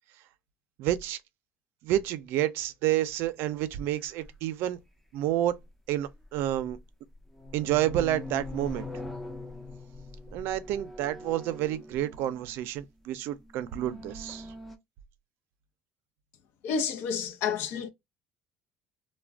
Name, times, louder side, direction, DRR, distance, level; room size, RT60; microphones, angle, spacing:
voice 1, 0.8-1.2 1.8-4.8 5.1-5.6 5.9-6.8 7.5-8.9 10.3-14.5, right 13 dB, 75° right, 0.4 m, -29 dB
old door, 4.2-4.3 6.0-6.8 7.1-12.6 13.4-14.8, left 2 dB, 5° left, 0.5 m, -42 dB
voice 2, 16.6-17.9, left 6 dB, 70° left, 0.5 m, -30 dB
2.4 x 2.1 x 3.3 m
cardioid pair, 135°, 4 cm